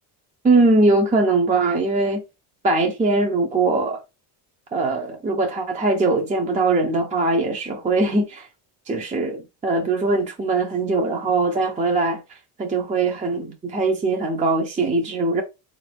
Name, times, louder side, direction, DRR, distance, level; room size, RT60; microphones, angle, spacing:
voice 1, 0.4-2.2 2.6-4.0 4.7-8.5 8.9-15.4, right 3 dB, 15° right, 0.5 m, -21 dB
3.8 x 2.6 x 3.3 m
cardioid pair, 135°, 46 cm